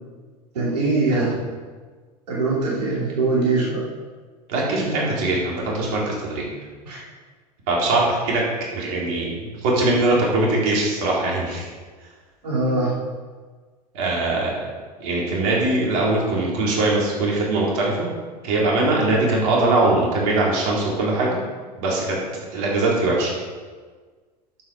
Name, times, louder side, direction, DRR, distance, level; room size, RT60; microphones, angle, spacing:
voice 1, 0.5-1.4 2.3-3.8 6.9-7.0 12.4-13.0, right 3 dB, 70° right, -6 dB, 2.8 m, -22 dB
voice 2, 4.5-6.5 7.7-8.4 8.7-11.7 13.9-14.7 15.0-18.1 18.4-21.4 21.8-22.2 22.5-23.3, right 2 dB, 55° right, -4 dB, 3.9 m, -21 dB
12.0 x 7.8 x 5.2 m, 1.5 s
figure-of-eight pair, 80°, 21 cm